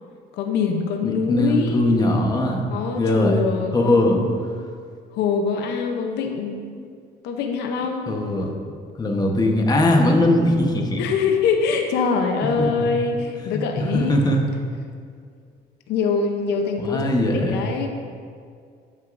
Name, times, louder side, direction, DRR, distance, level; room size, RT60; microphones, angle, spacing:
voice 1, 0.3-1.9 2.7-4.7 5.1-6.6 7.2-8.1 11.0-14.2 15.9-17.9, left 5 dB, 80° left, 4 dB, 0.7 m, -24 dB
voice 2, 1.0-2.7 3.0-3.4 3.7-4.2 6.7-6.9 8.1-8.5 9.0-11.0 12.6-12.9 13.5-13.6 13.9-14.4 16.8-17.7, left 1 dB, 25° left, 1 dB, 1.1 m, -20 dB
13.0 x 6.4 x 2.6 m, 2.2 s
cardioid pair, 110°, 17 cm